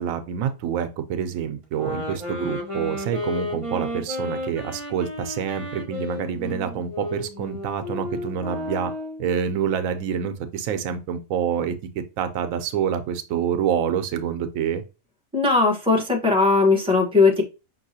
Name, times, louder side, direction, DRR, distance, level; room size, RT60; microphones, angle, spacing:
voice 1, 0.0-8.9 9.2-11.7 12.2-14.8, right 8 dB, 85° right, 1.0 m, -27 dB
sound 1, 1.7-9.3, left 1 dB, 25° right, 1.2 m, -32 dB
voice 2, 15.3-17.4, left 4 dB, 5° right, 1.0 m, -18 dB
5.4 x 2.9 x 2.7 m
omnidirectional pair, 1.4 m